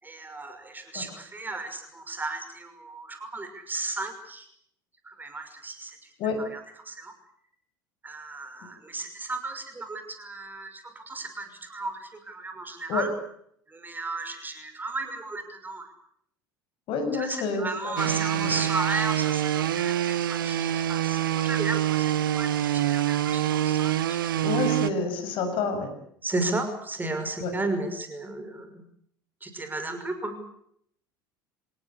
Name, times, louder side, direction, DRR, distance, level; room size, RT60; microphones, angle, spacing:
voice 1, 0.0-4.5 5.0-6.0 6.4-7.1 8.0-13.1 13.7-15.9 17.1-24.2 26.2-28.8 29.4-30.4, right 2 dB, 15° right, 8 dB, 6.0 m, -34 dB
voice 2, 16.9-18.0 18.3-18.6 24.4-25.9 27.4-27.5, left 4 dB, 50° left, 7 dB, 7.3 m, -29 dB
sound 1, 18.0-24.9, right 12 dB, 75° right, 1.0 m, -26 dB
27.0 x 19.0 x 8.4 m, 0.68 s
figure-of-eight pair, 70°, 12 cm